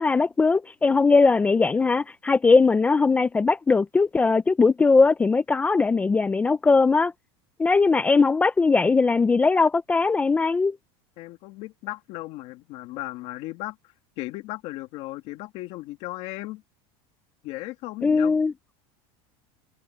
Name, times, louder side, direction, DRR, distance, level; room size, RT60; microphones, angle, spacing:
voice 1, 0.0-7.1 7.6-10.8 18.0-18.5, left 4 dB, 10° left, 0.5 m, -20 dB
voice 2, 11.2-13.8 14.2-16.6 17.4-18.4, left 18 dB, 45° left, 2.3 m, -36 dB
supercardioid pair, 165°, 14 cm